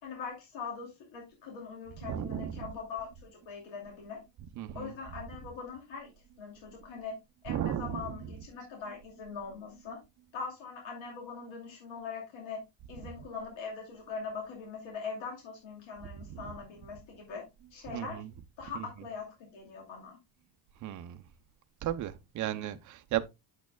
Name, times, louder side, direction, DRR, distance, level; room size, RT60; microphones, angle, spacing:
voice 1, 0.0-4.2 4.7-6.1 6.4-7.2 7.4-10.0 10.3-12.6 12.9-17.4 17.7-18.2 18.6-20.2, left 5 dB, 65° left, 2.7 m, -42 dB
voice 2, 2.0-2.7 4.6-4.9 7.5-8.3 16.2-16.5 17.9-18.3 18.7-18.9 20.8-21.2 21.8-23.2, right 11 dB, 40° right, 0.6 m, -35 dB
8.4 x 7.4 x 2.2 m
cardioid pair, 165°, 48 cm